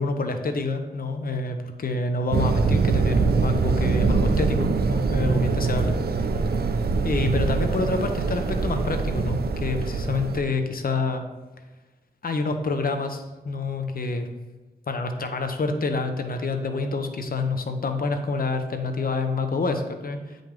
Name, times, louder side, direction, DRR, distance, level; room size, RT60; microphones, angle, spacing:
voice 1, 0.0-5.9 7.0-11.3 12.2-14.3 14.9-20.4, left 3 dB, 60° left, 6 dB, 1.0 m, -27 dB
sound 1, 2.3-10.4, right 4 dB, 70° right, 0.6 m, -23 dB
9.2 x 5.3 x 3.8 m, 1.2 s
wide cardioid pair, 80°, 17 cm